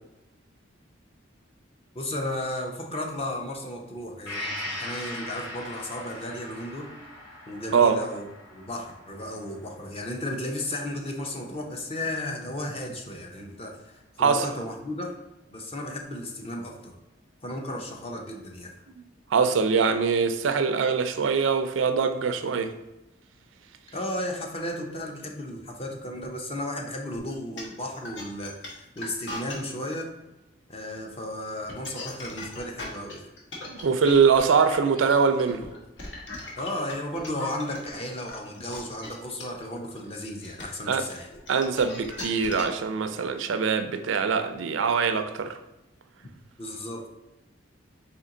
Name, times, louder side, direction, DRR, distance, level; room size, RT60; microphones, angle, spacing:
voice 1, 1.9-6.9 7.5-8.2 8.5-15.2 15.5-16.9 17.4-18.7 23.9-30.1 30.7-33.3 36.6-41.3 46.6-47.1, left 1 dB, 30° left, 0.6 m, -34 dB
Gong, 4.3-11.9 12.3-12.4, left 1 dB, 85° left, 1.4 m, -40 dB
voice 2, 19.3-22.7 33.7-35.7 40.9-41.0 41.5-45.5, right 5 dB, 80° right, 0.4 m, -23 dB
sound 1, 27.3-29.7 31.5-37.8 38.3-42.8, left 2 dB, 65° left, 1.0 m, -39 dB
4.3 x 2.9 x 3.8 m
head